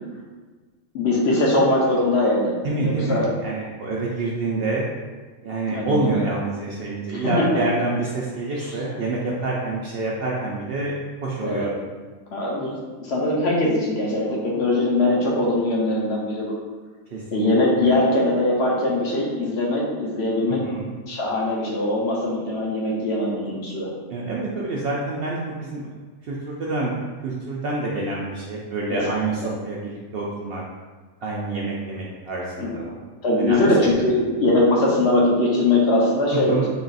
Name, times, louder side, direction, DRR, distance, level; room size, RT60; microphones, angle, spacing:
voice 1, 0.9-3.3 5.7-6.2 7.1-7.6 11.4-11.7 12.3-12.8 13.0-16.5 17.3-20.6 21.1-23.9 28.9-29.0 29.4-29.5 32.6-32.7 33.2-36.5, left 2 dB, 60° left, -3 dB, 1.0 m, -21 dB
voice 2, 2.6-4.8 5.4-11.7 17.1-17.6 17.8-17.9 20.6-20.9 24.1-25.9 26.2-26.9 27.2-30.6 31.2-33.0 33.4-33.9 36.3-36.6, right 3 dB, 65° right, -3 dB, 0.6 m, -27 dB
3.8 x 2.4 x 3.9 m, 1.4 s
omnidirectional pair, 1.4 m